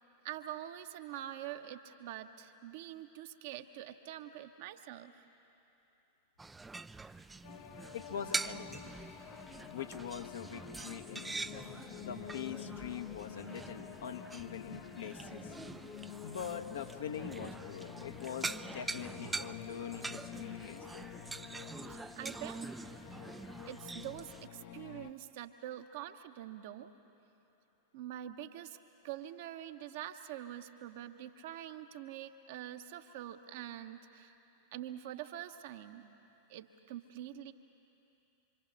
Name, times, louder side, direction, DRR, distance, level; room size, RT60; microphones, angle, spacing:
voice 1, 0.2-5.2 21.9-22.7 23.7-26.9 27.9-28.8 29.0-34.4 34.7-36.0 36.5-37.5, right 12 dB, 50° right, 7 dB, 1.1 m, -45 dB
sound 1, 6.4-24.5, right 3 dB, 10° right, 0.5 m, -44 dB
sound 2, 7.4-25.1, left 11 dB, 45° left, 0.9 m, -50 dB
voice 2, 7.9-9.0 9.7-15.5 16.2-21.1, left 8 dB, 65° left, 5 dB, 1.3 m, -43 dB
26.0 x 25.5 x 6.5 m, 2.9 s
figure-of-eight pair, 90°, 0 cm